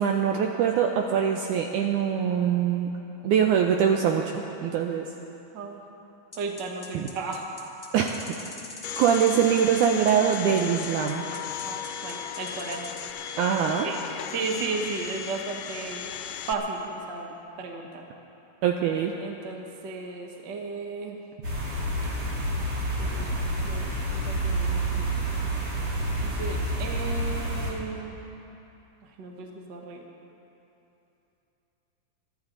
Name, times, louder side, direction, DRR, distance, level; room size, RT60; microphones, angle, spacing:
voice 1, 0.0-2.9 3.2-5.1 6.9-7.1 7.9-8.2 9.0-11.2 13.4-13.9 18.6-19.1, right 8 dB, 80° right, 2 dB, 1.8 m, -23 dB
sound 1, 6.3-13.1, left 3 dB, 55° left, 0.6 m, -43 dB
voice 2, 6.4-7.4 11.6-12.9 13.5-14.0 14.3-16.1 16.5-17.3 17.6-18.0 18.9-21.2 23.0-23.3 23.6-25.1 26.2-28.2 29.2-30.0, right 4 dB, 65° right, 2 dB, 1.0 m, -35 dB
Domestic sounds home sounds, 8.8-16.5, left 9 dB, 80° left, 2.0 m, -36 dB
sound 2, 21.4-27.7, right 1 dB, 40° right, 3.6 m, -28 dB
22.0 x 13.0 x 3.9 m, 3.0 s
omnidirectional pair, 4.2 m